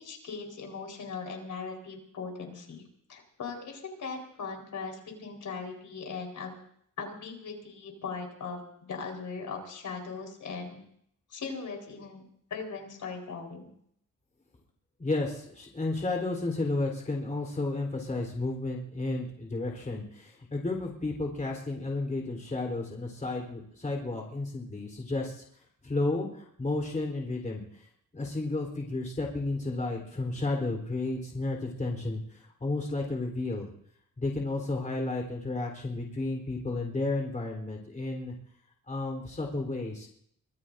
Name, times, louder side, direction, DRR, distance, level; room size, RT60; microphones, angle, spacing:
voice 1, 0.0-2.8 3.1-6.6 7.0-8.6 8.9-10.8 11.3-12.2 12.5-13.7, left 5 dB, 65° left, 1 dB, 4.5 m, -39 dB
voice 2, 15.0-25.4 25.8-27.6 28.1-33.7 34.2-38.3 38.9-40.1, left 2 dB, 25° left, 0 dB, 3.8 m, -32 dB
24.5 x 19.5 x 2.7 m, 0.69 s
cardioid pair, 115°, 32 cm